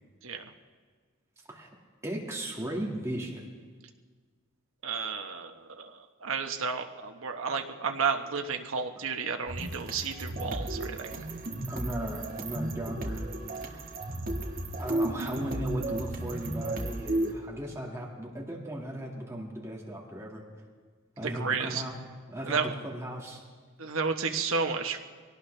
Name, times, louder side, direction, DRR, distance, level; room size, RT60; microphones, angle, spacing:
voice 1, 2.0-3.5 11.7-13.3 13.7-13.8 14.8-20.4 21.2-22.0 22.3-23.4, right 1 dB, 15° right, -2 dB, 2.0 m, -36 dB
voice 2, 4.8-11.1 21.2-21.8 22.5-22.7 23.8-25.0, right 5 dB, 75° right, 5 dB, 1.2 m, -32 dB
sound 1, 9.5-17.3, right 1 dB, 45° right, 1.9 m, -34 dB
24.0 x 18.0 x 3.3 m, 1.5 s
head